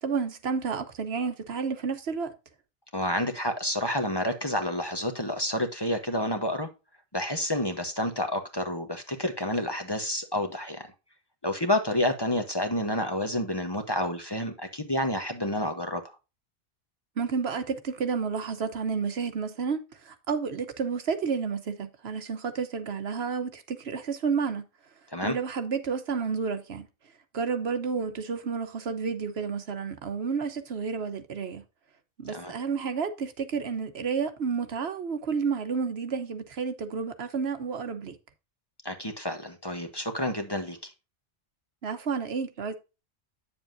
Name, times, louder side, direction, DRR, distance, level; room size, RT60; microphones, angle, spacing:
voice 1, 0.0-2.3 17.2-24.7 25.2-26.9 27.3-31.6 32.2-38.2 41.8-42.7, right 5 dB, 70° right, 1.2 m, -31 dB
voice 2, 2.9-6.7 7.1-10.9 11.4-16.0 25.1-25.3 32.3-32.5 38.8-40.9, left 1 dB, 25° left, 1.0 m, -29 dB
9.2 x 7.1 x 2.6 m
omnidirectional pair, 1.1 m